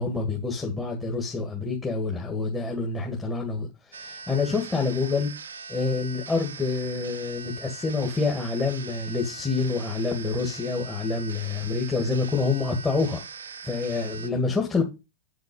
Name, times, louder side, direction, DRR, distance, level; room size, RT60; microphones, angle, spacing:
voice 1, 0.0-5.3 5.7-13.2 13.6-14.8, left 4 dB, 15° left, 2.0 m, -27 dB
sound 1, 3.9-14.3, right 5 dB, 70° right, 0.9 m, -41 dB
8.2 x 6.5 x 5.3 m
figure-of-eight pair, 90°, 0 cm